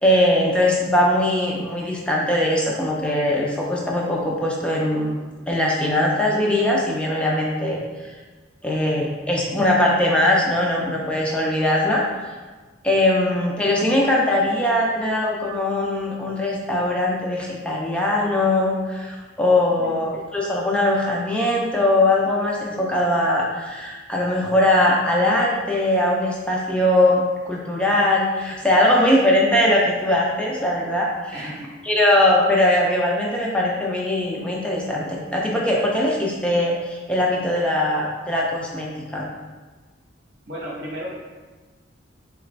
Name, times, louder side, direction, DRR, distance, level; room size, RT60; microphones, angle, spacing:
voice 1, 0.0-5.1 5.5-8.2 8.6-12.0 12.8-31.5 31.8-39.3, left 1 dB, 5° left, -3 dB, 0.5 m, -21 dB
voice 2, 19.5-20.0 31.3-31.7 40.5-41.1, equal, 60° right, -4 dB, 0.9 m, -35 dB
4.1 x 2.4 x 3.2 m, 1.3 s
head